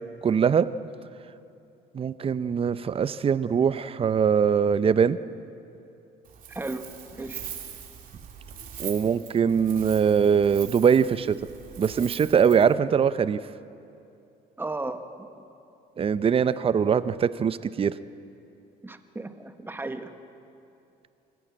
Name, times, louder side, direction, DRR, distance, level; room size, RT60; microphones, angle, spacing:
voice 1, 0.2-0.7 1.9-5.2 8.8-11.4 11.8-13.4 16.0-17.9, right 7 dB, 35° right, 14 dB, 0.7 m, -22 dB
Wind, 6.2-12.7, right 8 dB, 55° right, 2.9 m, -42 dB
voice 2, 6.5-7.4 14.6-15.3 18.8-20.1, right 2 dB, 15° right, 8 dB, 1.3 m, -35 dB
25.5 x 14.5 x 8.6 m, 2.7 s
cardioid pair, 110°, 17 cm